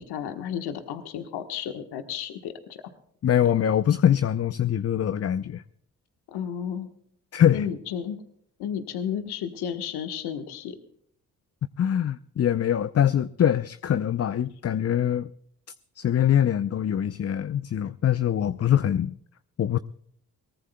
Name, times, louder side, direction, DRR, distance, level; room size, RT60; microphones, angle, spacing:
voice 1, 0.0-2.8 6.3-6.9 7.5-8.2 8.6-10.8, left 8 dB, 80° left, 1.3 m, -32 dB
voice 2, 3.2-5.6 7.3-7.7 11.8-15.3 16.0-19.1 19.6-19.8, left 10 dB, 40° left, 0.6 m, -23 dB
22.5 x 19.0 x 2.2 m
hypercardioid pair, 45°, 39 cm